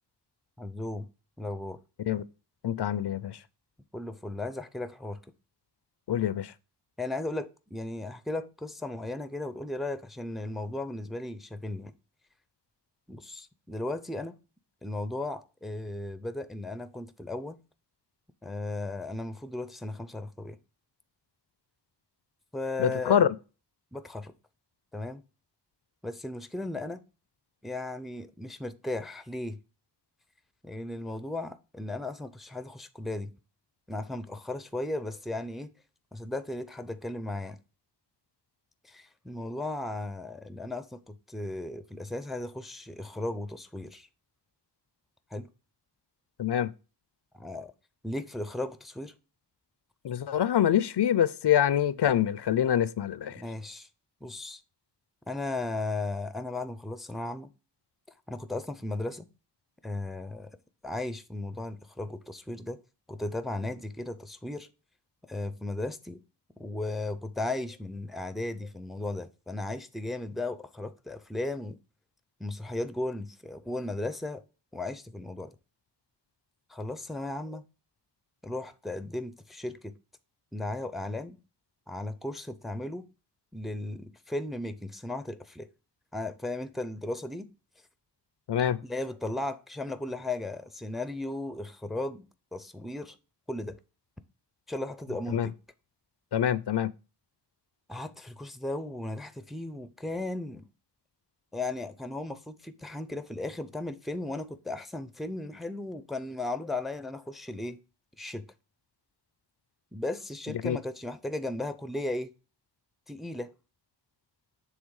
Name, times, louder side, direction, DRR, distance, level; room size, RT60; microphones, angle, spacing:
voice 1, 0.6-1.1 1.4-1.8 3.9-5.2 7.0-11.9 13.1-14.4 14.8-17.6 18.4-20.6 22.5-23.3 23.9-24.3 24.9-25.2 26.0-27.0 27.6-29.6 30.6-33.3 33.9-35.7 36.1-37.6 38.8-44.1 45.3-45.5 47.3-47.7 48.0-49.1 53.3-53.9 54.2-54.6 55.3-57.5 58.3-59.3 59.8-60.6 60.8-62.8 63.1-64.7 65.2-66.2 66.6-71.8 72.4-74.4 74.7-75.5 76.7-77.6 78.4-80.0 80.5-81.4 81.9-83.1 83.5-85.7 86.1-87.5 88.8-93.2 93.5-93.8 94.7-95.5 97.9-100.7 101.5-107.8 108.2-108.5 109.9-112.3 113.1-113.5, left 2 dB, ahead, 0.5 m, -36 dB
voice 2, 2.6-3.4 6.1-6.5 22.8-23.3 46.4-46.7 50.0-53.4 88.5-88.8 95.3-95.5 96.3-96.9 110.6-110.8, left 10 dB, 70° left, 0.5 m, -25 dB
7.3 x 3.4 x 4.7 m
wide cardioid pair, 85°, 42 cm